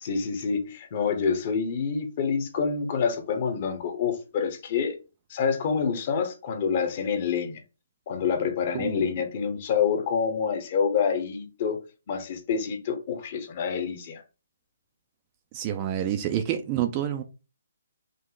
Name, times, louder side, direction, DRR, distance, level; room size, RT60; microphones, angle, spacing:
voice 1, 0.0-4.9 5.3-7.6 8.1-11.8 12.1-14.2, left 6 dB, 35° left, 0.9 m, -27 dB
voice 2, 15.5-17.2, right 11 dB, 25° right, 0.4 m, -28 dB
5.1 x 2.2 x 3.8 m
hypercardioid pair, 165°, 0 cm